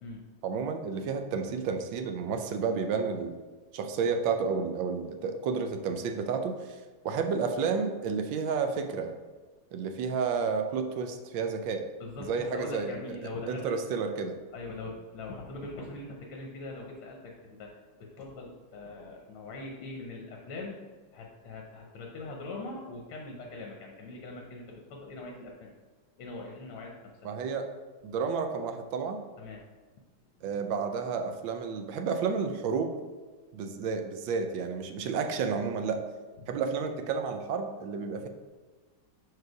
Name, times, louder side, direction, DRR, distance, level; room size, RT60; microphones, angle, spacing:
voice 1, 0.4-3.4 3.7-6.8 7.0-9.1 9.7-11.8 12.3-13.2 13.5-14.3 27.2-27.7 28.0-29.2 30.4-32.9 33.5-36.0 36.5-38.3, right 5 dB, 75° right, 6 dB, 1.2 m, -31 dB
voice 2, 12.0-13.7 14.5-17.7 18.0-20.8 21.1-25.7 26.2-27.3 29.4-29.6 30.4-30.6 36.4-36.5, left 2 dB, 75° left, 0 dB, 1.6 m, -42 dB
4.7 x 4.7 x 4.7 m, 1.3 s
omnidirectional pair, 2.4 m